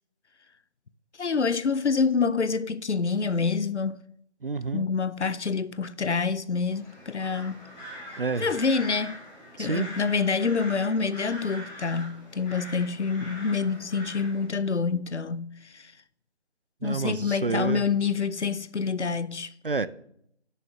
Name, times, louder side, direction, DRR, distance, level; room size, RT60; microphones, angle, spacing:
voice 1, 1.2-4.0 4.7-7.6 8.4-9.2 9.6-15.9 16.8-19.5, left 5 dB, 85° left, 0.7 m, -27 dB
voice 2, 4.4-4.9 8.2-8.5 9.6-9.9 16.8-17.8 19.6-19.9, right 4 dB, 50° right, 0.5 m, -29 dB
sound 1, 6.6-14.5, equal, 10° left, 3.4 m, -43 dB
7.4 x 6.6 x 6.4 m
figure-of-eight pair, 160°, 34 cm